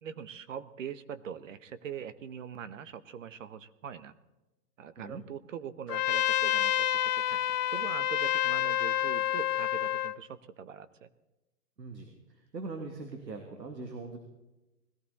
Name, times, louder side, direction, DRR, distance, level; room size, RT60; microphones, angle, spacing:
voice 1, 0.0-4.1 4.8-7.4 7.7-11.1, right 7 dB, 50° right, 14 dB, 1.1 m, -42 dB
Trumpet, 5.9-10.2, left 12 dB, 70° left, 0.6 m, -28 dB
voice 2, 11.8-14.2, right 3 dB, 85° right, 4 dB, 2.6 m, -41 dB
20.5 x 15.5 x 4.1 m, 1.0 s
hypercardioid pair, 150°, 48 cm